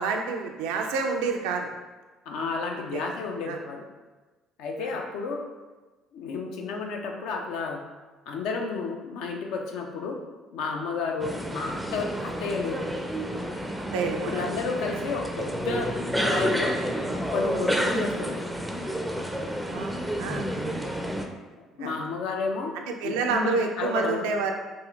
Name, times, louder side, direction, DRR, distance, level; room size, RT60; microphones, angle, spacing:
voice 1, 0.0-1.7 2.9-3.0 3.5-3.6 4.8-4.9 13.9-14.4 19.7-20.5 21.8-21.9 22.7-24.5, right 4 dB, 75° right, 3 dB, 0.4 m, -28 dB
voice 2, 2.3-3.9 4.6-5.4 6.1-7.8 8.3-10.2 10.5-12.9 14.2-15.9 16.2-16.8 17.1-18.4 21.8-22.7 23.0-24.2, left 4 dB, 70° left, 2 dB, 0.5 m, -31 dB
sound 1, 11.2-21.3, equal, 5° right, 0.4 m, -30 dB
3.6 x 2.4 x 3.1 m, 1.2 s
hypercardioid pair, 55°, 0 cm